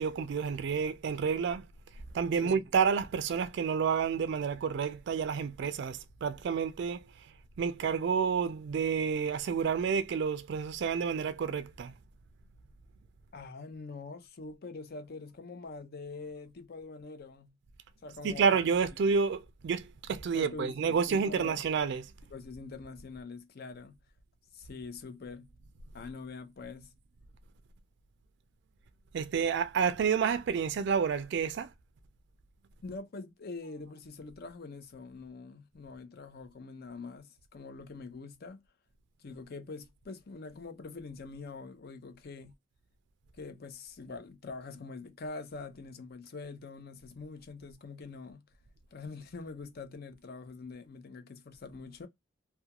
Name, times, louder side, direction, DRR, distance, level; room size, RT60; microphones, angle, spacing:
voice 1, 0.0-1.7 2.1-7.3 7.6-11.9 18.2-22.1 29.1-31.7, right 6 dB, 65° right, 0.3 m, -29 dB
voice 2, 13.3-17.5 18.0-18.5 20.3-21.6 22.3-23.9 24.5-25.5 25.9-26.9 32.8-38.6 39.2-42.5 43.4-48.4 48.9-52.1, left 3 dB, 55° left, 0.5 m, -44 dB
2.3 x 2.2 x 2.8 m
head